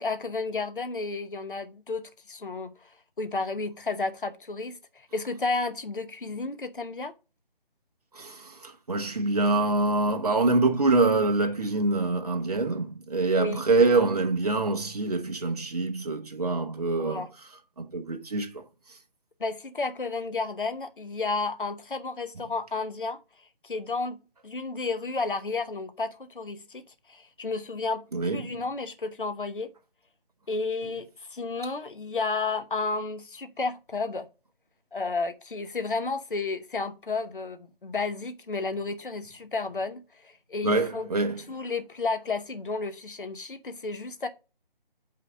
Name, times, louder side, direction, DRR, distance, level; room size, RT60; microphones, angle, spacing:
voice 1, 0.0-2.9 3.2-7.1 13.4-13.6 17.0-17.3 19.4-23.2 23.6-24.2 24.4-26.8 27.1-28.1 28.3-29.7 30.5-34.3 34.9-41.1 41.5-44.3, left 3 dB, 60° left, 1.0 m, -32 dB
voice 2, 8.1-17.2 17.8-18.6 28.1-28.5 40.6-41.4, right 3 dB, 40° right, 1.0 m, -25 dB
5.7 x 4.0 x 6.2 m
figure-of-eight pair, 155°, 29 cm